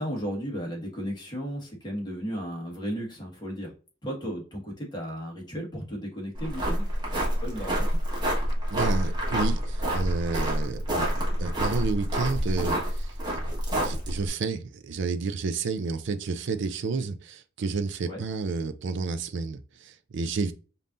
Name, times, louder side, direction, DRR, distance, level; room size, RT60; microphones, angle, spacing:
voice 1, 0.0-3.7 4.0-6.9 7.4-8.0 18.0-18.2, equal, 20° left, 1.5 m, -34 dB
sound 1, 6.3-14.3, equal, 20° right, 1.3 m, -27 dB
voice 2, 8.7-13.4 13.7-20.5, right 4 dB, 60° right, 0.4 m, -31 dB
5.3 x 2.8 x 2.5 m
head